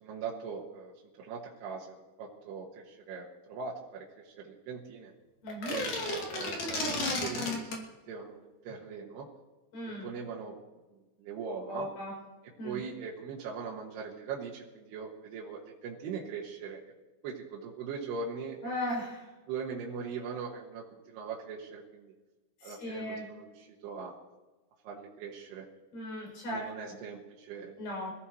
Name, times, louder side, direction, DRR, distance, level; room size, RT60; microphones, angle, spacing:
voice 1, 0.0-5.1 5.7-9.3 10.0-10.5 11.2-11.9 12.6-16.8 17.2-18.7 19.5-22.1 22.6-24.2 24.8-25.7 26.5-27.8, right 5 dB, 75° right, -3 dB, 3.5 m, -41 dB
voice 2, 5.4-5.8 9.7-10.1 11.7-12.1 12.6-12.8 18.6-19.3 22.6-23.3 25.9-27.0 27.8-28.1, left 1 dB, 80° left, -2 dB, 9.4 m, -37 dB
sound 1, 5.5-7.8, left 2 dB, 55° left, 3.9 m, -33 dB
27.0 x 15.5 x 3.2 m, 1.2 s
omnidirectional pair, 4.8 m